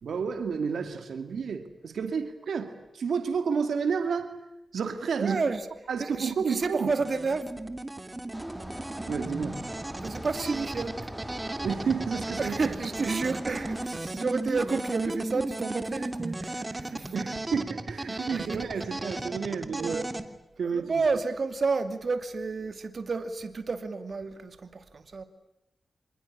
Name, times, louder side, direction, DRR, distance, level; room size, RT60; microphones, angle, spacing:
voice 1, 0.0-4.3 4.7-5.4 5.9-6.9 9.1-9.7 11.6-12.5 17.1-20.0 20.6-20.9, right 6 dB, 85° right, 8 dB, 2.4 m, -30 dB
voice 2, 5.2-5.6 6.0-7.5 10.0-11.1 12.4-17.1 18.1-18.8 19.8-20.1 20.7-25.2, right 4 dB, 60° right, 9 dB, 2.6 m, -31 dB
sound 1, 7.0-20.2, right 2 dB, 25° right, 2.5 m, -36 dB
sound 2, 8.3-13.9, equal, 5° right, 2.9 m, -42 dB
26.5 x 21.0 x 9.8 m, 0.90 s
cardioid pair, 60°, 0 cm